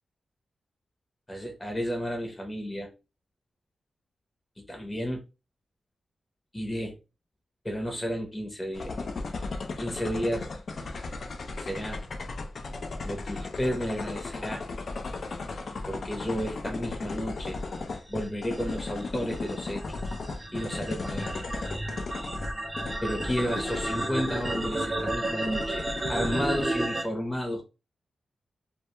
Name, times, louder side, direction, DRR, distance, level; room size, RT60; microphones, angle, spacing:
voice 1, 1.3-2.9 4.6-5.2 6.5-7.0 7.6-9.0 9.8-10.5 11.6-12.0 13.0-14.6 15.9-17.6 18.1-20.0 20.5-21.4 23.0-27.6, equal, 15° left, 0.7 m, -32 dB
sound 1, 8.7-26.6, left 3 dB, 60° left, 0.4 m, -36 dB
sound 2, 17.8-27.0, right 2 dB, 20° right, 0.6 m, -33 dB
2.2 x 2.1 x 2.9 m
cardioid pair, 75°, 0 cm